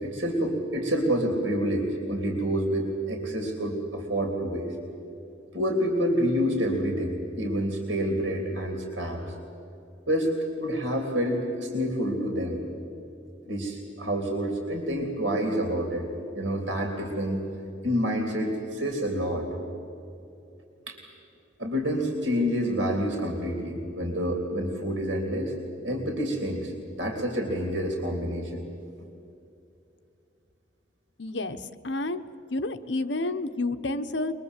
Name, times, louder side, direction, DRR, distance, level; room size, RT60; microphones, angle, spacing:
voice 1, 0.0-4.7 5.5-9.2 10.1-12.6 13.5-16.1 16.3-17.4 17.8-19.5 20.9-21.0 21.6-25.6 25.8-28.6 29.0-29.1, equal, 90° right, 2 dB, 3.5 m, -28 dB
voice 2, 31.2-31.6 31.8-32.2 32.5-34.3, left 2 dB, 70° left, 9 dB, 1.1 m, -29 dB
23.5 x 22.0 x 8.3 m, 2.7 s
head